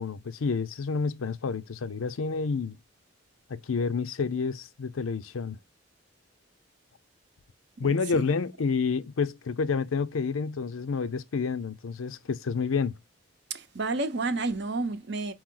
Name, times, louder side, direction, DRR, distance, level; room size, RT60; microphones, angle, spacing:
voice 1, 0.0-2.8 3.5-5.6 7.8-13.0, left 5 dB, 85° left, 0.5 m, -29 dB
voice 2, 7.8-8.2 13.5-15.3, right 3 dB, 55° right, 0.7 m, -31 dB
4.6 x 3.0 x 3.8 m
head